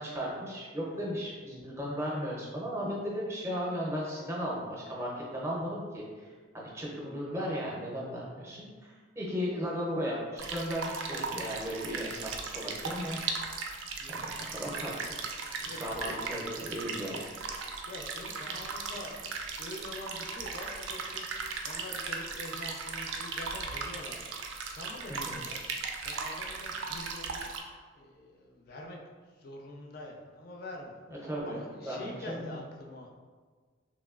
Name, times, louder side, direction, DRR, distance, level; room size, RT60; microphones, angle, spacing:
voice 1, 0.0-6.3 6.5-13.2 14.1-15.1 15.6-17.3 25.1-25.4 31.2-31.6 31.8-32.5, equal, 15° right, -4 dB, 0.5 m, -36 dB
sound 1, 10.4-27.6, right 4 dB, 75° right, 0.3 m, -37 dB
voice 2, 15.6-16.2 17.6-24.3 24.6-25.6 26.0-29.0 29.4-33.2, left 1 dB, 50° left, 0 dB, 0.4 m, -45 dB
3.0 x 2.6 x 2.3 m, 1.5 s
head